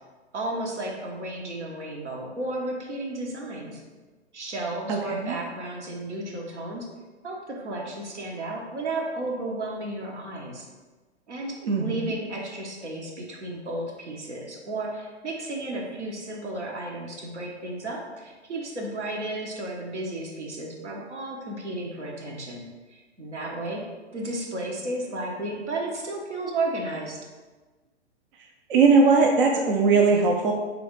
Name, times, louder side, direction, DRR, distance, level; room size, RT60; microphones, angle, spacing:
voice 1, 0.3-3.8 4.3-6.9 7.2-10.7 11.3-23.9 24.1-27.2, right 2 dB, 80° right, -1 dB, 1.0 m, -33 dB
voice 2, 4.9-5.3 11.7-12.1 28.7-30.5, right 4 dB, 50° right, 2 dB, 0.5 m, -20 dB
3.4 x 3.4 x 3.8 m, 1.3 s
figure-of-eight pair, 110°, 34 cm